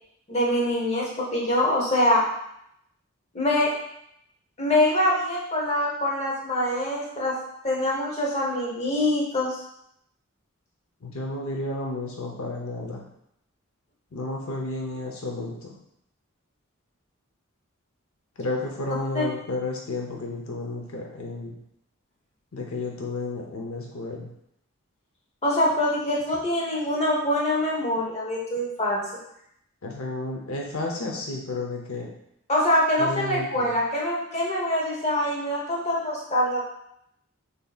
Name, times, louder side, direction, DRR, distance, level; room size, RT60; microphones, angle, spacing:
voice 1, 0.3-2.2 3.3-3.7 4.6-7.3 7.6-9.6 19.1-19.2 25.4-29.0 32.5-36.6, left 1 dB, 30° left, -3 dB, 0.9 m, -24 dB
voice 2, 11.0-13.0 14.1-15.7 18.4-21.5 22.5-24.3 29.8-32.1 33.0-33.7, left 2 dB, 75° left, 0 dB, 0.7 m, -32 dB
6.7 x 2.8 x 2.4 m, 0.76 s
head